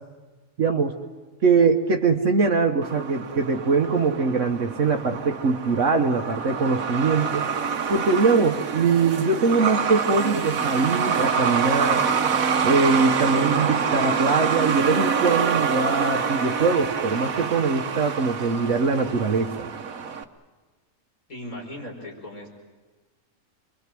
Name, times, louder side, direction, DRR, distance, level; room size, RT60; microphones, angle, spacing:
voice 1, 0.6-0.9 1.4-7.4 7.9-12.0 12.6-19.7, right 4 dB, 65° right, 3 dB, 1.5 m, -22 dB
Truck, 2.8-20.2, right 6 dB, 80° right, 1.6 m, -26 dB
voice 2, 21.3-22.5, left 1 dB, 85° left, 1 dB, 5.3 m, -37 dB
27.5 x 22.5 x 7.6 m, 1.3 s
omnidirectional pair, 1.4 m